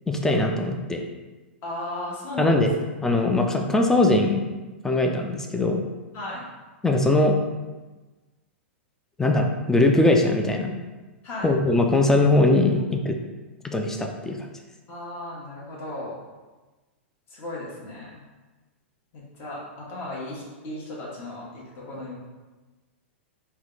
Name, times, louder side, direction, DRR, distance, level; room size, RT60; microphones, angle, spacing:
voice 1, 0.1-1.0 2.4-2.7 3.0-4.4 4.8-5.8 6.8-7.4 9.2-10.8 11.4-13.2 13.6-14.4, left 2 dB, 5° left, 3 dB, 0.5 m, -21 dB
voice 2, 1.6-2.8 6.1-6.5 11.2-11.5 14.9-16.2 17.3-18.2 19.1-22.2, left 2 dB, 40° left, -5 dB, 1.4 m, -35 dB
4.3 x 2.3 x 3.9 m, 1.2 s
hypercardioid pair, 110°, 6 cm